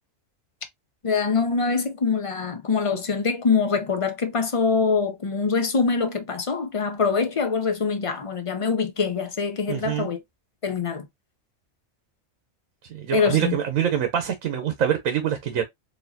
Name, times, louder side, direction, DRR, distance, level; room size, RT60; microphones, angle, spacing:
voice 1, 1.0-10.2 10.6-11.1 13.1-13.6, left 5 dB, 35° left, 0.6 m, -24 dB
voice 2, 9.7-10.1 12.9-15.6, right 9 dB, 85° right, 1.2 m, -25 dB
4.2 x 3.0 x 2.6 m
omnidirectional pair, 1.4 m